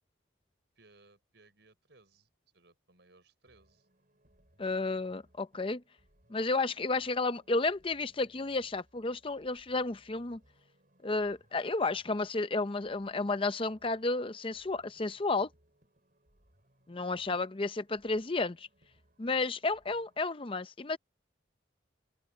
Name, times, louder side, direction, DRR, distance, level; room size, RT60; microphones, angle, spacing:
voice 1, 0.8-2.3 2.5-3.9 17.0-17.2, right 3 dB, 65° right, 5.8 m, -63 dB
sound 1, 3.5-20.3, right 1 dB, 45° right, 7.8 m, -68 dB
voice 2, 4.6-5.8 6.3-10.4 11.0-15.5 16.9-18.7 19.2-21.0, left 3 dB, 30° left, 0.6 m, -32 dB
open air
head